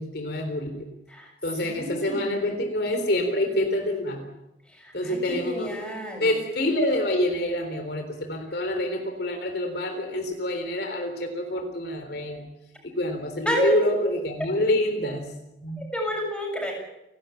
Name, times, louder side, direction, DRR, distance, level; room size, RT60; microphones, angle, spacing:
voice 1, 0.0-0.9 1.4-4.3 4.9-5.8 6.2-12.5 12.9-15.3 15.6-15.8, left 1 dB, 60° left, 5 dB, 3.6 m, -27 dB
voice 2, 1.6-2.3 4.8-6.3 13.4-13.9 15.9-16.7, equal, 5° left, 0 dB, 7.8 m, -29 dB
30.0 x 13.5 x 9.0 m, 0.90 s
head